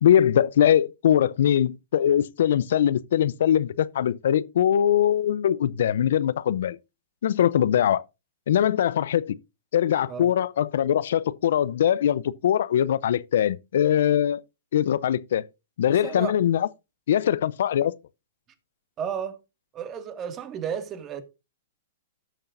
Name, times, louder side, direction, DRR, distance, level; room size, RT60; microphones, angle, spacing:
voice 1, 0.0-6.8 7.2-8.0 8.5-9.4 9.7-14.4 14.7-15.4 15.8-16.7 17.1-17.9, left 10 dB, 70° left, 0.6 m, -22 dB
voice 2, 15.9-16.3 19.0-19.4 19.7-21.2, right 8 dB, 25° right, 1.9 m, -33 dB
16.5 x 6.6 x 2.5 m
hypercardioid pair, 125°, 0 cm